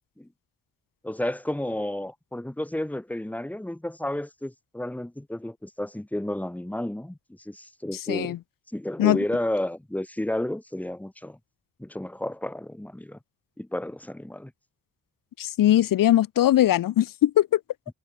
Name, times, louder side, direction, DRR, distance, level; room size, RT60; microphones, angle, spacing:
voice 1, 1.0-7.2 7.5-8.4 8.7-11.4 11.8-13.2 13.6-14.5, left 1 dB, 5° left, 5.3 m, -31 dB
voice 2, 8.1-8.4 9.0-9.2 15.4-17.6, left 12 dB, 90° left, 4.4 m, -20 dB
cardioid pair, 150°, 32 cm